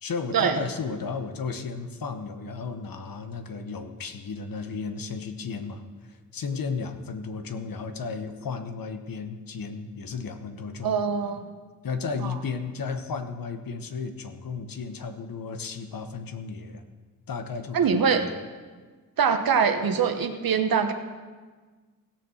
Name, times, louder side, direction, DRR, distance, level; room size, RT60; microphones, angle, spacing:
voice 1, 0.0-5.8 6.1-11.0 11.8-16.8 17.3-18.3, left 5 dB, 75° left, 7 dB, 1.1 m, -34 dB
voice 2, 10.8-11.5 12.2-12.3 17.7-18.3 19.2-20.9, right 6 dB, 80° right, 7 dB, 1.1 m, -23 dB
16.5 x 7.0 x 6.4 m, 1.4 s
cardioid pair, 70°, 35 cm